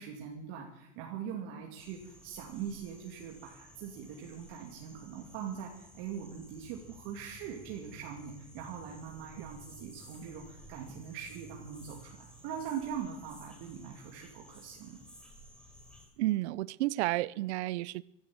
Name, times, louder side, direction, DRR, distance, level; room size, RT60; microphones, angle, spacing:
voice 1, 0.0-15.0, right 8 dB, 60° right, 2.8 m, -42 dB
sound 1, 1.8-16.1, equal, 5° left, 4.9 m, -55 dB
voice 2, 16.2-18.0, right 18 dB, 75° right, 0.6 m, -31 dB
16.0 x 11.5 x 7.5 m
supercardioid pair, 120°, 34 cm